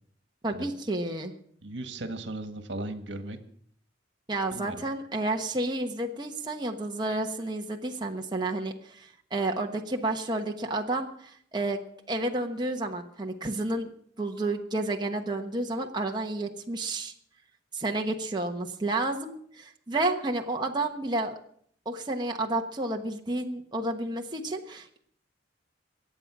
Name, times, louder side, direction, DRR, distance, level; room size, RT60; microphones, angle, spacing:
voice 1, 0.4-1.3 4.3-11.8 12.1-13.9 14.2-17.1 17.7-21.4 21.8-25.0, right 2 dB, 25° right, 1 dB, 1.2 m, -31 dB
voice 2, 1.6-3.4 4.5-4.8, right 2 dB, 70° right, 8 dB, 1.7 m, -37 dB
23.5 x 8.8 x 6.1 m, 0.64 s
head